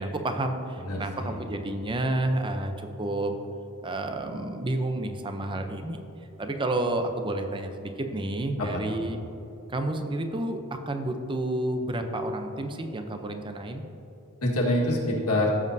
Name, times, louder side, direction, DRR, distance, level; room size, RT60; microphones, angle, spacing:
voice 1, 0.0-3.3 3.8-6.0 6.4-9.2 9.7-13.8, right 1 dB, 20° right, 6 dB, 0.6 m, -30 dB
voice 2, 0.8-1.4 8.6-9.0 14.4-15.5, left 1 dB, 80° left, -3 dB, 1.7 m, -26 dB
16.0 x 7.4 x 2.7 m, 2.9 s
head